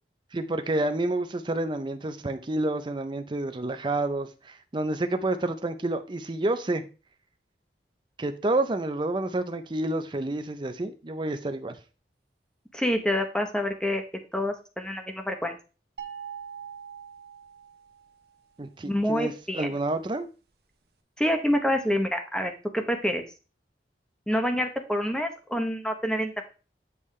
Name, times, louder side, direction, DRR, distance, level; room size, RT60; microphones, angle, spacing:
voice 1, 0.3-6.8 8.2-11.8 18.6-20.3, right 2 dB, 25° right, 0.5 m, -29 dB
voice 2, 12.7-14.0 14.3-15.6 18.8-19.7 21.2-23.2 24.3-26.4, equal, 5° left, 0.8 m, -27 dB
sound 1, 16.0-18.2, right 7 dB, 65° right, 1.1 m, -42 dB
8.3 x 5.4 x 3.2 m
head